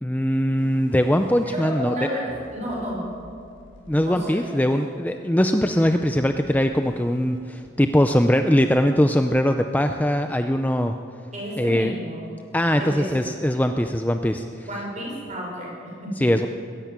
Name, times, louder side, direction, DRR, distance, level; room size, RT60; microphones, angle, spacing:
voice 1, 0.0-2.1 3.9-10.9 11.6-11.9 12.5-14.5 16.2-16.5, equal, 10° left, 6 dB, 0.5 m, -21 dB
sound 1, 0.6-1.4 2.3-4.8 5.7-7.4, left 1 dB, 65° left, 4.2 m, -48 dB
voice 2, 1.5-3.0 4.0-4.6 11.3-12.2 12.8-13.3 14.7-16.1, equal, 35° right, -2 dB, 6.4 m, -31 dB
21.0 x 13.5 x 9.5 m, 2.4 s
head